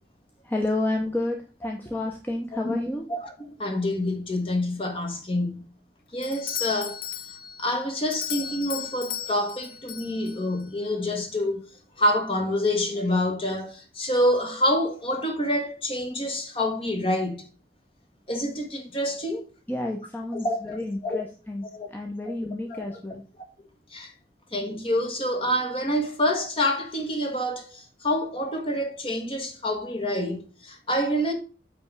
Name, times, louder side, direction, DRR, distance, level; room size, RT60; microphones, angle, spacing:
voice 1, 0.4-3.0 19.7-23.2, left 2 dB, 10° left, 0.8 m, -30 dB
voice 2, 3.6-5.7 6.1-7.0 7.6-11.6 12.0-17.5 18.3-19.4 20.3-21.3 21.7-21.9 22.3-22.4 22.7-23.0 23.9-24.1 24.5-31.3, left 1 dB, 30° left, 1.5 m, -27 dB
Doorbell, 6.2-10.7, left 9 dB, 55° left, 0.6 m, -36 dB
8.9 x 3.4 x 6.1 m
head